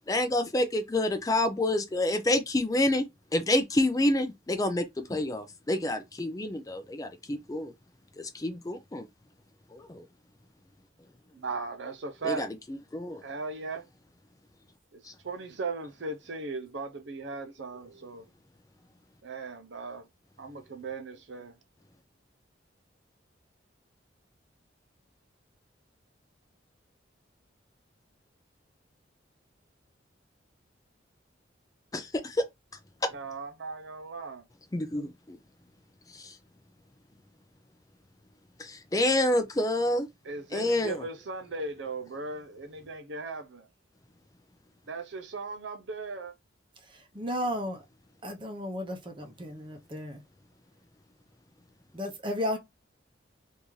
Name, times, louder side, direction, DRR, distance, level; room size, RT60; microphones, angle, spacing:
voice 1, 0.1-3.1 3.3-7.7 8.2-9.1 9.7-10.0 12.2-12.5 12.9-13.2 15.0-15.1 31.9-32.5 33.0-33.1 34.7-35.4 36.1-36.4 38.6-40.1 40.5-41.0, left 1 dB, 20° left, 0.4 m, -28 dB
voice 2, 11.3-12.5 13.2-13.9 14.9-18.3 19.2-20.1 20.4-21.5 33.1-34.4 40.2-43.7 44.9-46.3, right 3 dB, 70° right, 0.6 m, -38 dB
voice 3, 46.8-47.8 48.2-50.2 51.9-52.6, equal, 25° right, 0.7 m, -34 dB
3.5 x 2.7 x 3.1 m
head